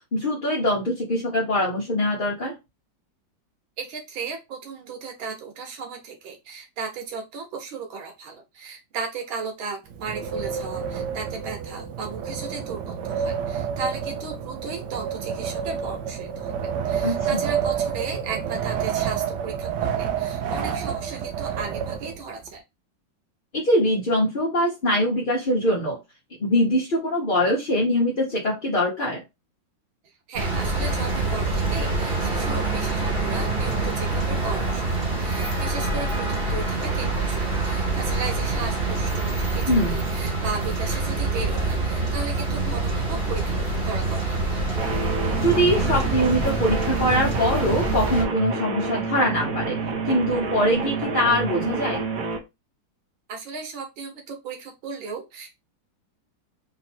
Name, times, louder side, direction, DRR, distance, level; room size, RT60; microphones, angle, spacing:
voice 1, 0.1-2.5 17.0-17.5 23.5-26.0 26.4-29.2 39.7-40.0 45.4-49.8 50.1-52.0, equal, 35° left, -3 dB, 0.9 m, -23 dB
voice 2, 3.8-16.5 16.9-22.6 30.3-43.6 43.8-44.6 53.3-55.5, right 4 dB, 90° right, 3 dB, 1.9 m, -35 dB
Wind, 9.9-22.5, right 8 dB, 70° right, 1.2 m, -29 dB
sound 1, 30.4-48.2, right 2 dB, 35° right, 1.1 m, -26 dB
sound 2, 44.8-52.4, right 4 dB, 50° right, 1.3 m, -28 dB
3.9 x 2.8 x 4.3 m, 0.23 s
omnidirectional pair, 2.1 m